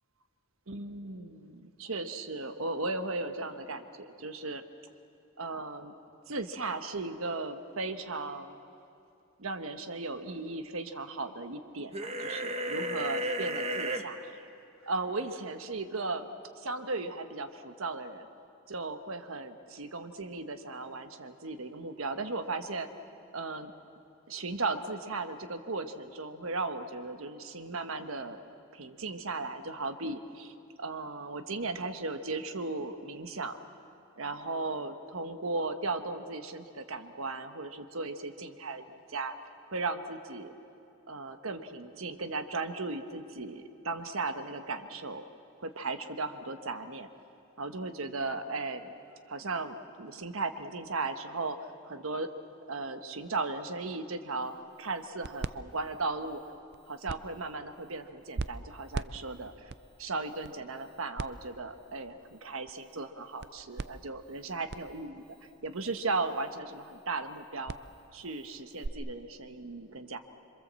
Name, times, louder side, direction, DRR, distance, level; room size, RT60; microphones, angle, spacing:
voice 1, 0.7-4.6 5.4-5.9 6.3-8.6 9.4-14.5 14.8-18.3 18.7-22.9 23.3-23.7 24.3-28.4 28.7-33.6 34.2-38.8 39.1-39.4 39.7-40.5 41.1-45.2 45.6-47.1 47.6-48.9 49.3-51.6 51.8-52.3 52.7-54.5 54.8-56.4 56.9-59.5 60.0-65.2 65.6-67.8 68.1-70.2, right 3 dB, 80° right, 8 dB, 1.3 m, -36 dB
sound 1, 11.9-14.0, right 1 dB, 30° right, 1.1 m, -33 dB
sound 2, 54.4-68.9, right 3 dB, 50° right, 0.5 m, -44 dB
27.0 x 24.0 x 7.6 m, 2.7 s
head